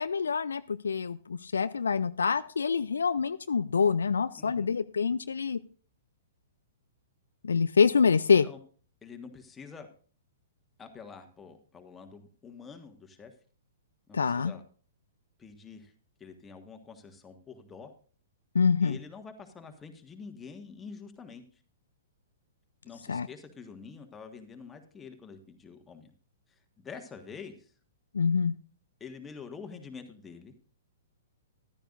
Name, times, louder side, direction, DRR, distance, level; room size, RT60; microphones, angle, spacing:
voice 1, 0.0-5.6 7.4-8.5 14.1-14.5 18.5-19.0 23.1-23.3 28.1-28.5, left 5 dB, 65° left, 13 dB, 0.4 m, -26 dB
voice 2, 4.4-4.7 8.4-8.6 9.0-9.9 10.8-13.3 14.1-14.6 15.4-15.9 16.2-17.9 18.8-21.6 22.8-26.1 26.5-27.7 29.0-30.5, left 5 dB, 15° left, 5 dB, 1.6 m, -47 dB
14.0 x 12.0 x 2.6 m, 0.41 s
figure-of-eight pair, 110°, 0 cm